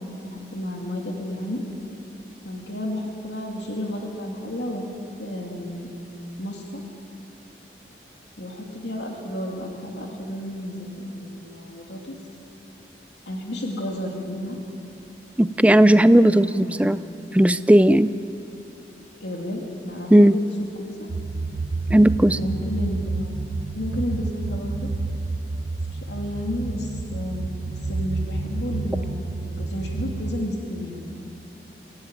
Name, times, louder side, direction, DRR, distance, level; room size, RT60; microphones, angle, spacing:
voice 1, 0.2-1.7 2.4-5.9 6.4-6.8 8.4-12.1 13.3-14.6 15.6-16.9 19.2-20.4 20.8-21.1 22.2-23.3 23.7-24.9 26.1-31.2, left 1 dB, 80° left, 0 dB, 2.6 m, -32 dB
voice 2, 15.4-17.0 17.3-18.1 20.1-20.4 21.9-22.4, right 1 dB, 10° right, 13 dB, 0.4 m, -15 dB
sound 1, 21.1-30.5, right 3 dB, 60° right, 0.6 m, -30 dB
24.0 x 16.5 x 9.0 m, 2.8 s
head